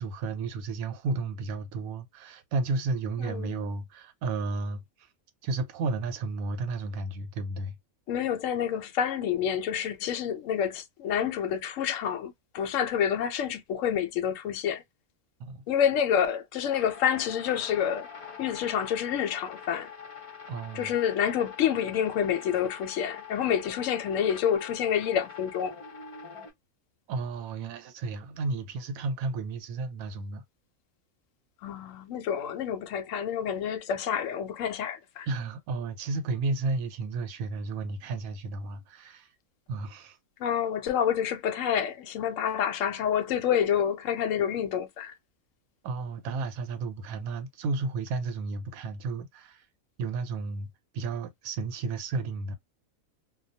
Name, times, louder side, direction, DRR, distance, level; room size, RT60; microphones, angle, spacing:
voice 1, 0.0-4.8 5.4-7.7 15.4-15.6 20.5-21.0 27.1-30.4 35.3-39.3 39.7-40.2 45.8-49.6 50.0-50.7 50.9-52.6, right 3 dB, 85° right, 1.0 m, -32 dB
voice 2, 3.2-3.7 8.1-14.8 15.7-18.1 18.4-19.9 20.7-25.7 31.6-35.3 40.4-45.1, left 8 dB, 70° left, 0.9 m, -28 dB
sound 1, 16.6-26.5, left 6 dB, 35° left, 0.5 m, -44 dB
2.3 x 2.2 x 2.6 m
omnidirectional pair, 1.5 m